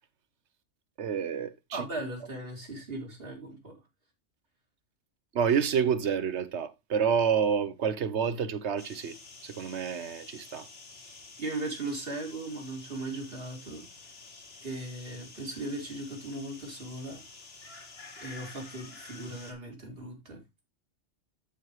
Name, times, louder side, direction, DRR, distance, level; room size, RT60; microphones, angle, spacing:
voice 1, 1.0-1.8 5.3-10.7, right 7 dB, 65° right, 1.1 m, -29 dB
voice 2, 1.7-3.8 11.4-13.9 14.6-17.2 18.2-20.4, right 2 dB, 50° right, 2.9 m, -38 dB
sound 1, 8.8-19.5, left 3 dB, 55° left, 1.7 m, -49 dB
13.0 x 4.8 x 3.1 m
omnidirectional pair, 1.3 m